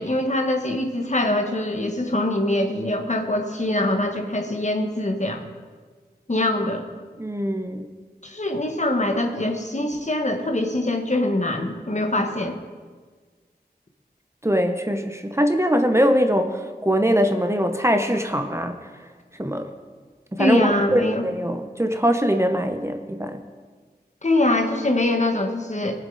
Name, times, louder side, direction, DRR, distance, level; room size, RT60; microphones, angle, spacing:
voice 1, 0.0-5.4 6.3-6.8 8.2-12.6 20.4-21.3 24.2-25.9, left 1 dB, 45° left, 3 dB, 1.3 m, -23 dB
voice 2, 7.2-7.9 14.4-18.8 19.4-19.7 20.3-23.4, equal, 15° right, 6 dB, 0.8 m, -22 dB
20.5 x 7.5 x 3.9 m, 1.5 s
wide cardioid pair, 55°, 17 cm